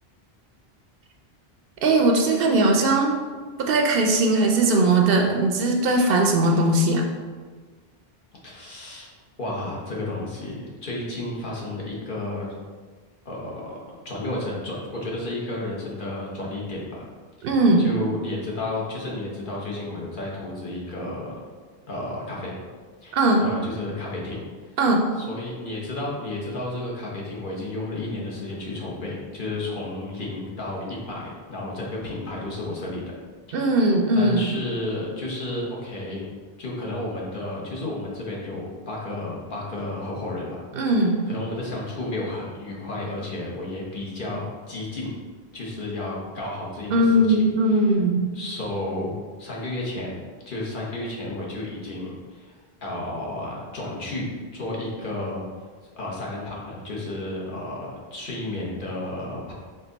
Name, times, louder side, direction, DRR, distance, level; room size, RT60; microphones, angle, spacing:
voice 1, 1.8-3.1 3.6-7.1 17.4-17.9 23.1-23.5 24.8-25.1 33.5-34.5 40.7-41.2 46.9-48.3, right 2 dB, 70° right, 2 dB, 0.7 m, -19 dB
voice 2, 8.4-9.1 9.4-12.5 13.2-13.8 14.0-17.0 17.4-17.5 17.8-21.4 21.9-22.6 23.0-24.4 25.2-33.0 33.6-33.7 34.1-36.3 36.6-40.6 41.3-45.1 45.5-47.9 48.3-55.5 56.0-59.5, left 2 dB, 55° left, -4 dB, 1.1 m, -32 dB
4.5 x 2.5 x 3.9 m, 1.5 s
omnidirectional pair, 1.0 m